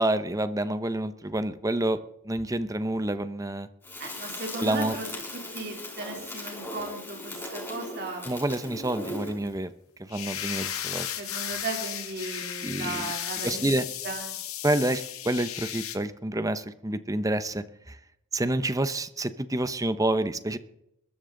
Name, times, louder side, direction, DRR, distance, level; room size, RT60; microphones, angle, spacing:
voice 1, 0.0-3.7 4.6-4.9 8.2-9.7 10.0-11.1 12.6-13.1 13.4-13.9 14.6-18.0 18.3-20.6, right 1 dB, 15° right, 12 dB, 0.8 m, -28 dB
Crackle, 3.8-9.5, left 1 dB, 10° left, 5.5 m, -38 dB
voice 2, 4.0-5.1 5.5-8.2 11.2-13.7 14.0-14.3, right 3 dB, 50° right, 1 dB, 3.2 m, -36 dB
sound 1, 10.1-16.0, left 11 dB, 75° left, 1.8 m, -35 dB
21.5 x 13.0 x 3.9 m, 0.79 s
head